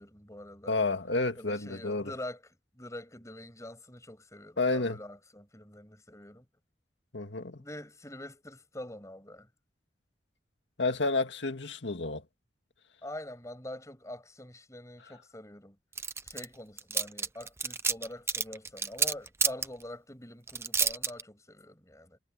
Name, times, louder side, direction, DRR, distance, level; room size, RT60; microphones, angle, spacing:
voice 1, 0.0-0.8 1.3-6.5 7.6-9.5 13.0-15.8 16.2-22.2, left 1 dB, 15° left, 6.4 m, -45 dB
voice 2, 0.7-2.1 4.6-5.0 7.1-7.6 10.8-12.2, left 3 dB, 75° left, 2.1 m, -30 dB
sound 1, 16.0-16.4 16.8-19.7 20.5-21.2, right 5 dB, 15° right, 0.6 m, -28 dB
head